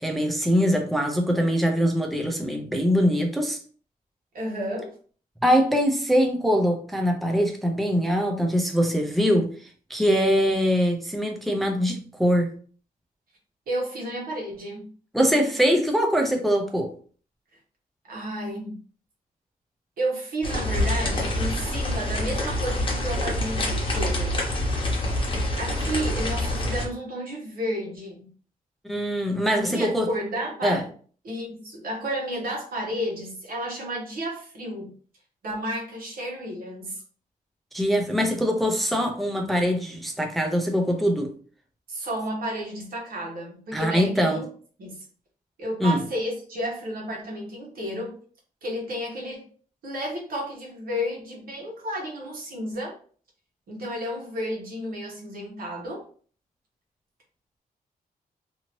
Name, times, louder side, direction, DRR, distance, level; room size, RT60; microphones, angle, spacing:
voice 1, 0.0-3.6 5.4-12.5 15.1-16.9 28.9-30.1 30.6-30.8 37.7-41.3 43.7-44.4 45.8-46.0, equal, ahead, 2 dB, 0.4 m, -23 dB
voice 2, 4.3-4.9 13.7-14.9 18.0-18.8 20.0-24.4 25.5-28.3 29.5-30.9 31.2-34.9 35.4-37.0 41.9-44.5 44.8-45.0 45.6-48.2 48.6-49.5 49.8-53.0 53.7-56.0, equal, 80° right, -2 dB, 1.3 m, -32 dB
sound 1, 20.4-26.9, left 1 dB, 35° left, 0.9 m, -26 dB
2.7 x 2.7 x 3.0 m, 0.43 s
wide cardioid pair, 150°, 15 cm